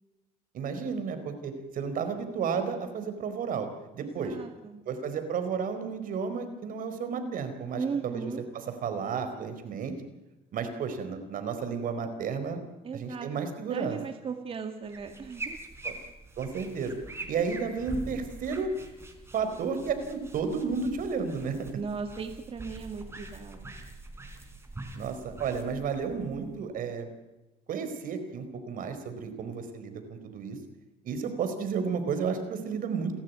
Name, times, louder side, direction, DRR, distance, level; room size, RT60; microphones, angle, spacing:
voice 1, 0.5-3.7 3.9-4.4 4.9-9.9 10.5-12.6 12.9-14.0 15.8-15.9 16.4-17.0 17.3-18.7 19.3-21.6 24.9-27.1 27.7-30.6 31.0-33.2, right 5 dB, 60° right, 8 dB, 4.4 m, -32 dB
voice 2, 4.0-4.8 7.7-8.4 12.8-13.3 13.7-15.6 21.7-23.7, right 5 dB, 35° right, 5 dB, 2.2 m, -37 dB
sound 1, 14.8-26.8, right 2 dB, 15° right, 4.3 m, -44 dB
29.5 x 13.5 x 9.4 m, 1.1 s
cardioid pair, 125°, 16 cm